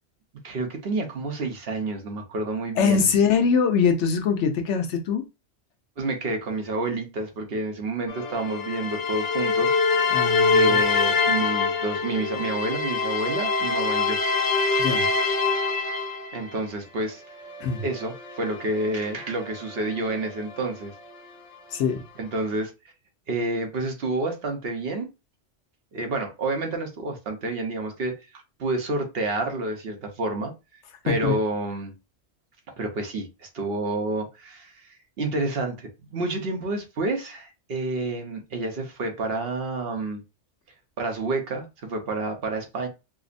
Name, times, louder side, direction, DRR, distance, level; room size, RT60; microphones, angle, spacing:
voice 1, 0.4-3.1 6.0-9.7 10.5-14.2 16.3-17.2 17.8-20.9 22.2-22.7 23.3-25.1 25.9-31.9 32.8-34.9 35.2-40.2 41.0-42.9, right 2 dB, 60° right, 1.0 m, -29 dB
voice 2, 2.8-5.2 10.1-10.8 14.8-15.1 17.6-17.8 21.7-22.0 31.1-31.3, left 6 dB, 85° left, 1.0 m, -23 dB
sound 1, 8.1-16.6 17.4-20.7, left 4 dB, 45° left, 0.6 m, -25 dB
4.9 x 2.0 x 2.5 m
omnidirectional pair, 1.2 m